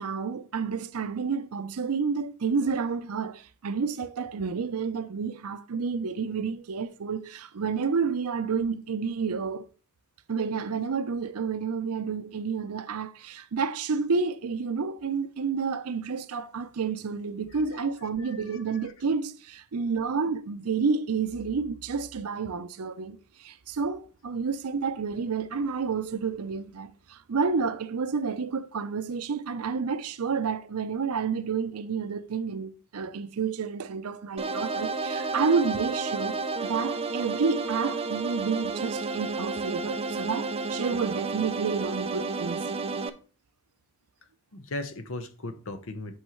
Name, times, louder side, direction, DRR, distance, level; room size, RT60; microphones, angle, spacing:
voice 1, 0.0-9.7 10.3-36.3 36.6-42.7, right 5 dB, 90° right, 0.6 m, -30 dB
voice 2, 18.2-18.8 44.5-46.2, left 2 dB, 65° left, 0.8 m, -37 dB
sound 1, 34.4-43.1, right 3 dB, 25° right, 0.5 m, -31 dB
8.4 x 5.4 x 3.1 m
head